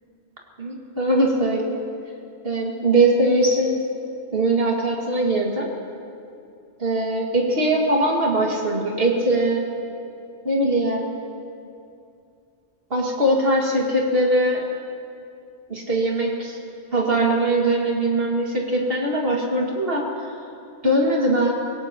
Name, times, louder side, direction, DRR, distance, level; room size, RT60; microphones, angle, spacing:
voice 1, 0.6-1.8 2.4-3.8 4.3-5.7 6.8-9.7 10.4-11.1 12.9-14.7 15.7-16.6 16.9-20.0 20.8-21.5, right 1 dB, 55° right, -2 dB, 2.5 m, -21 dB
25.5 x 18.0 x 3.0 m, 2.6 s
omnidirectional pair, 1.2 m